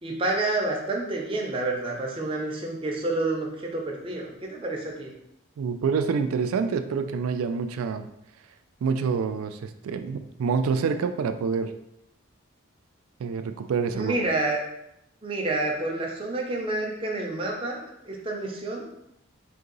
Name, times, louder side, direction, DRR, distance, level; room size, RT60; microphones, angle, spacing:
voice 1, 0.0-5.1 13.9-14.6 15.2-18.9, right 2 dB, 25° right, -1 dB, 0.6 m, -29 dB
voice 2, 5.6-8.1 8.8-11.7 13.2-14.2, right 5 dB, 80° right, 9 dB, 0.3 m, -27 dB
3.8 x 2.7 x 3.8 m, 0.81 s
head